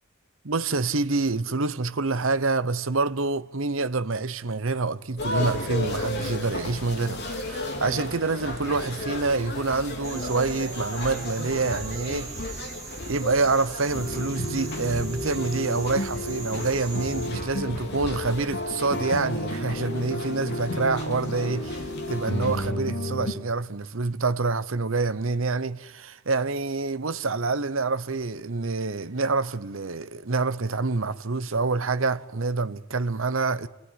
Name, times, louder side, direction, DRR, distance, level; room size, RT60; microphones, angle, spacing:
voice 1, 0.4-12.3 13.1-21.8 22.1-33.7, right 3 dB, 65° right, 0.9 m, -27 dB
sound 1, 5.2-22.7, left 1 dB, 50° left, 3.5 m, -35 dB
sound 2, 10.0-17.3, right 5 dB, 15° right, 3.4 m, -41 dB
sound 3, 13.9-23.3, left 1 dB, 75° left, 2.7 m, -32 dB
27.0 x 18.5 x 10.0 m
head